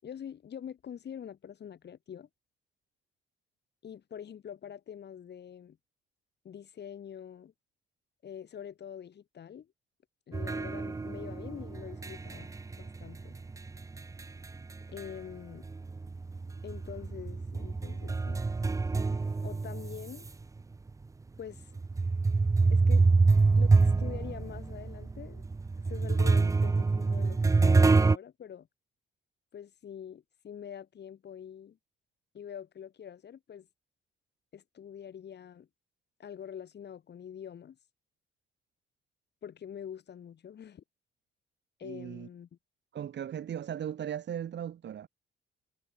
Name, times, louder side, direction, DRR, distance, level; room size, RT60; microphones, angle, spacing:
voice 1, 0.0-2.3 3.8-5.8 6.4-7.5 8.2-9.7 10.3-13.3 14.9-15.7 16.6-18.4 19.4-20.3 21.4-21.7 22.7-23.1 23.5-25.4 25.9-28.7 29.5-31.8 32.3-33.7 34.5-35.7 36.2-37.8 39.4-40.8 41.8-42.5, left 8 dB, 60° left, 7.0 m, -45 dB
sound 1, 10.3-15.3 15.6-20.3 20.9-21.0 21.8-28.2, right 3 dB, 15° right, 0.5 m, -26 dB
voice 2, 41.8-42.3 42.9-45.1, right 9 dB, 60° right, 5.4 m, -37 dB
cardioid pair, 90°, 20 cm